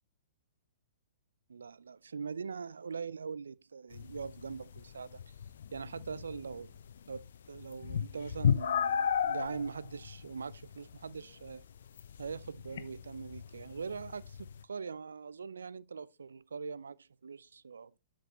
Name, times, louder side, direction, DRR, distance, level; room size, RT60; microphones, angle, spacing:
voice 1, 1.5-5.3 5.7-6.7 7.1-7.2 7.5-11.6 12.2-17.9, right 5 dB, 75° right, 0.5 m, -42 dB
sound 1, 3.9-14.6, left 8 dB, 65° left, 0.9 m, -36 dB
12.5 x 6.2 x 3.2 m
figure-of-eight pair, 115°, 0 cm